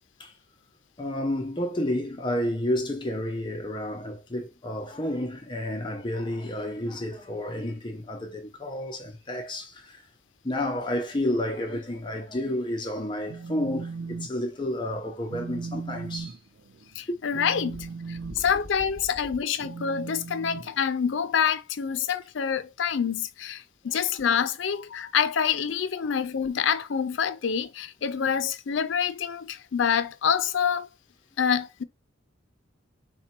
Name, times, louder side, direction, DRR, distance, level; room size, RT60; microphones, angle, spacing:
voice 1, 1.0-10.0 10.4-16.3, left 1 dB, 25° left, 0.6 m, -30 dB
Telephone, 13.3-14.3 14.6-14.9 15.3-21.4, right 4 dB, 65° right, 0.4 m, -38 dB
voice 2, 17.0-30.9 31.4-31.8, left 7 dB, 70° left, 0.4 m, -27 dB
4.2 x 2.2 x 4.3 m
head